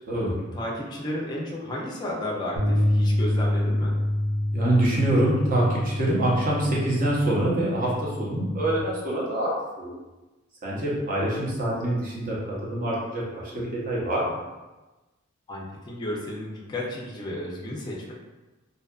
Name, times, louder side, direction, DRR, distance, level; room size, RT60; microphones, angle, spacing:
voice 1, 0.5-3.9 15.5-18.1, left 1 dB, 20° left, -3 dB, 0.4 m, -33 dB
sound 1, 2.6-8.8, left 1 dB, 85° right, 0.7 m, -27 dB
voice 2, 4.5-9.5 9.8-9.9 10.6-12.4 12.6-14.4, right 1 dB, 40° right, -5 dB, 0.7 m, -25 dB
2.6 x 2.4 x 2.3 m, 1.1 s
head